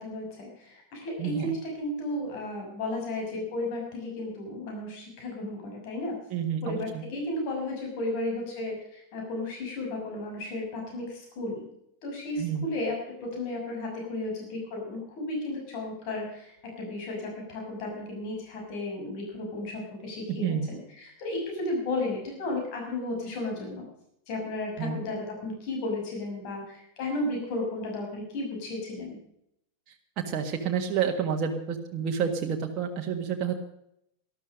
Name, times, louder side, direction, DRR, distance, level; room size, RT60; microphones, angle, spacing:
voice 1, 0.0-6.2 6.6-11.6 12.0-23.9 24.3-29.2, left 2 dB, 45° left, 0 dB, 6.2 m, -34 dB
voice 2, 1.2-1.5 6.3-7.0 12.4-12.6 20.4-20.7 24.8-25.0 30.3-33.5, right 7 dB, 35° right, 2 dB, 1.7 m, -29 dB
13.0 x 12.5 x 6.4 m, 0.76 s
figure-of-eight pair, 90°, 0 cm